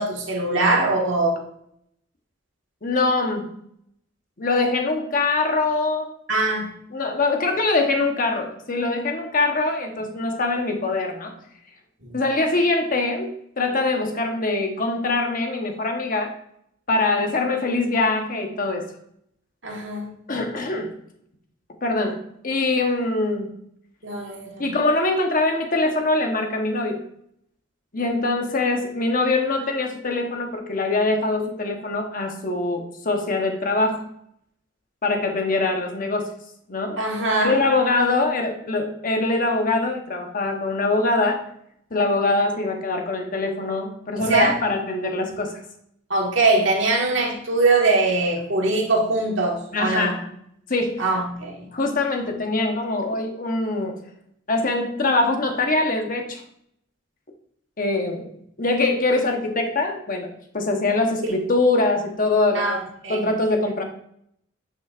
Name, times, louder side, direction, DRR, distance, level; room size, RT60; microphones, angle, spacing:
voice 1, 0.0-1.4 6.3-6.7 12.0-12.1 19.6-20.1 24.0-24.8 37.0-37.6 44.2-44.6 46.1-50.2 51.0-51.7 61.2-61.3 62.5-63.3, right 2 dB, 75° right, 0 dB, 1.7 m, -22 dB
voice 2, 2.8-3.5 4.4-6.1 6.9-11.4 12.1-16.3 16.9-18.9 20.3-20.9 21.8-23.5 24.6-27.0 27.9-34.0 35.0-36.3 36.7-37.0 37.4-41.4 41.9-45.6 49.7-50.2 50.7-51.0 51.7-54.0 54.5-56.4 57.8-62.8 63.1-63.8, left 2 dB, 45° left, 4 dB, 1.1 m, -23 dB
10.0 x 5.6 x 2.5 m, 0.72 s
head